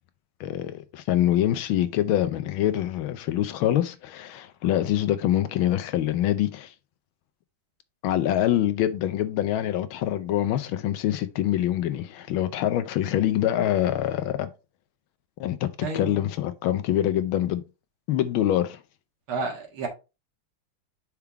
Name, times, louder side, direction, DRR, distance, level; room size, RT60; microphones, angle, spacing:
voice 1, 0.4-6.7 8.0-14.5 15.4-17.6 18.1-18.8, left 12 dB, 75° left, 1.4 m, -25 dB
voice 2, 15.8-16.1 19.3-19.9, right 3 dB, 75° right, 2.6 m, -30 dB
5.7 x 3.6 x 4.6 m
omnidirectional pair, 2.4 m